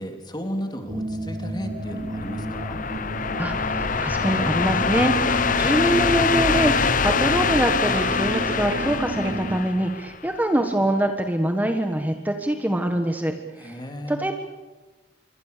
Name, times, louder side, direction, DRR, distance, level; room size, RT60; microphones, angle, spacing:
voice 1, 0.0-2.8 13.6-14.2, equal, 25° left, 5 dB, 3.3 m, -34 dB
sound 1, 0.9-9.6, right 1 dB, 50° right, 3.4 m, -32 dB
sound 2, 1.9-10.3, left 5 dB, 50° left, 1.0 m, -24 dB
voice 2, 3.3-13.8 14.1-14.3, right 1 dB, 10° right, 5 dB, 1.4 m, -24 dB
Cough, 7.8-9.0 9.2-9.4 9.9-10.0 10.6-10.7, right 3 dB, 90° right, 3.7 m, -34 dB
26.5 x 24.5 x 6.8 m, 1.2 s
head